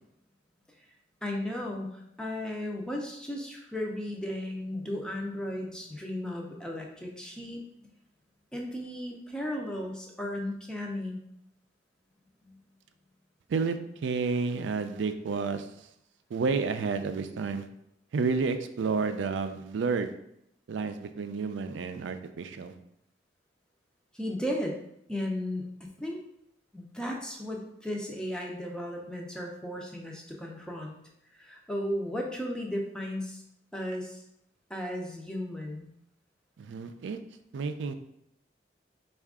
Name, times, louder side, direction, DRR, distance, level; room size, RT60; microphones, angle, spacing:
voice 1, 1.2-7.9 8.5-11.2 12.4-12.6 24.1-24.7 25.1-25.6 26.0-26.2 26.7-30.9 31.3-33.4 33.7-34.2 34.7-35.9, left 1 dB, 5° left, 0 dB, 0.5 m, -35 dB
voice 2, 14.0-15.7 16.3-17.6 18.1-20.1 20.7-22.7 36.6-37.2 37.5-37.9, right 4 dB, 80° right, 9 dB, 0.4 m, -30 dB
4.5 x 2.4 x 3.5 m, 0.76 s
head